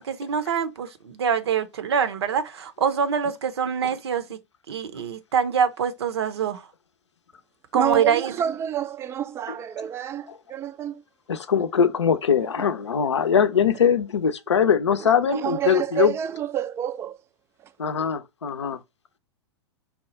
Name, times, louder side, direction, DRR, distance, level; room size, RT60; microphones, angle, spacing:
voice 1, 0.0-4.4 4.7-6.7 7.7-8.3, right 7 dB, 65° right, 0.7 m, -25 dB
voice 2, 7.7-11.0 12.4-12.7 15.0-17.2 17.6-17.7 18.6-18.7, right 10 dB, 15° right, 0.3 m, -29 dB
voice 3, 11.3-16.1 17.8-18.8, left 7 dB, 75° left, 0.6 m, -22 dB
4.2 x 2.3 x 4.2 m
figure-of-eight pair, 100°, 15 cm